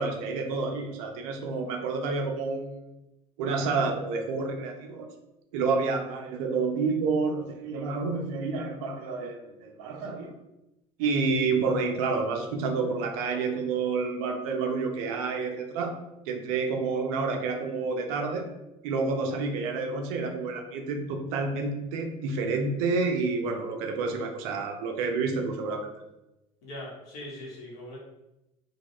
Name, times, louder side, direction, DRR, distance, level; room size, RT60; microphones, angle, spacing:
voice 1, 0.0-2.9 3.4-5.1 5.5-10.3 11.0-15.9 16.3-18.5 18.8-25.9, right 4 dB, 70° right, 4 dB, 0.5 m, -29 dB
voice 2, 26.6-28.0, left 1 dB, 70° left, -3 dB, 1.0 m, -41 dB
2.2 x 2.1 x 2.9 m, 0.94 s
hypercardioid pair, 70°, 19 cm